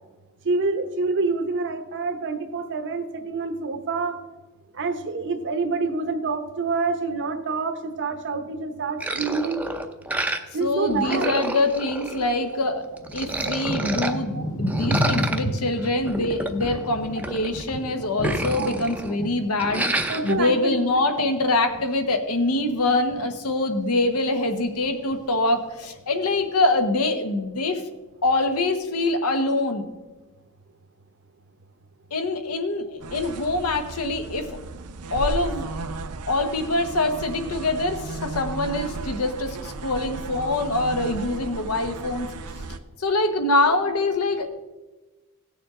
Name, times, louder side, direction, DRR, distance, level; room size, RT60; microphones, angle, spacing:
voice 1, 0.4-4.2 4.7-9.6 10.5-11.3 12.5-12.6 13.4-13.5 14.3-14.4 18.1-18.2 18.5-18.8 20.1-20.7, right 3 dB, 55° right, 8 dB, 0.9 m, -27 dB
sound 1, 9.0-10.6 10.9-12.6 13.0-14.1 14.7-17.7 18.0-19.3 19.6-20.3, right 1 dB, 5° right, 0.6 m, -29 dB
voice 2, 10.6-12.8 13.1-27.8 28.2-29.9 32.1-34.6 35.1-35.7 36.3-42.3 43.0-44.6, left 2 dB, 80° left, 7 dB, 1.1 m, -24 dB
Thunder / Rain, 11.9-12.0 12.7-22.2 22.5-23.3 23.9-24.3 24.5-25.3 25.9-26.0, equal, 35° left, 1.5 m, -32 dB
sound 2, 33.0-42.8, right 3 dB, 85° right, 0.6 m, -35 dB
16.5 x 6.9 x 3.7 m, 1.2 s
head